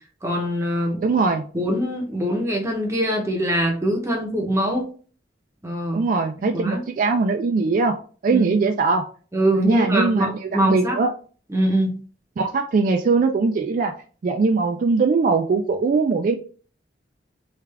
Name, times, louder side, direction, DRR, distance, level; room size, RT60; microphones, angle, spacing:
voice 1, 0.2-1.1 1.5-4.9 5.6-6.1 6.5-6.8 8.3-8.5 9.3-11.0 11.5-12.0, right 1 dB, 15° right, 0 dB, 0.7 m, -23 dB
voice 2, 1.0-1.5 5.9-7.9 8.2-9.0 9.5-11.1 12.4-13.9 14.2-16.4, right 4 dB, 50° right, 5 dB, 0.3 m, -21 dB
3.4 x 2.4 x 3.2 m, 0.41 s
head